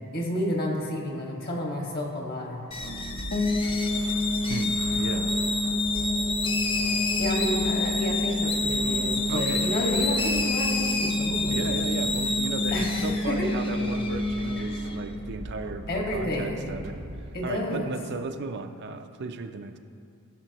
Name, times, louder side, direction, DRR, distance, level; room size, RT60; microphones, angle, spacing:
voice 1, 0.1-2.6 7.2-11.7 12.7-13.5 14.6-14.8 15.9-16.7 17.3-17.9, left 1 dB, 45° left, -1 dB, 1.6 m, -30 dB
sound 1, 2.7-15.0, left 3 dB, 25° left, 0.6 m, -30 dB
sound 2, 2.8-17.2, right 1 dB, 80° right, 1.1 m, -40 dB
sound 3, 3.3-16.2, left 1 dB, 65° left, 1.1 m, -29 dB
voice 2, 4.5-5.3 9.3-9.6 11.5-15.9 16.1-17.0 17.4-19.8, right 4 dB, 50° right, 6 dB, 0.5 m, -35 dB
17.0 x 6.7 x 2.9 m, 2.5 s
head